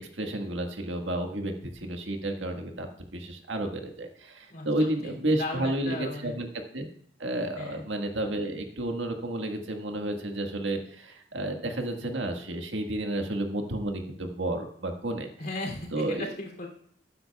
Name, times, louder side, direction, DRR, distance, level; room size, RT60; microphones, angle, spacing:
voice 1, 0.0-6.5 6.7-6.9 7.2-15.3 15.9-16.3, right 1 dB, 90° right, 4 dB, 1.6 m, -31 dB
voice 2, 4.5-6.4 7.6-7.8 15.4-16.7, left 2 dB, 55° left, 0 dB, 2.8 m, -37 dB
19.5 x 9.4 x 2.3 m, 0.67 s
head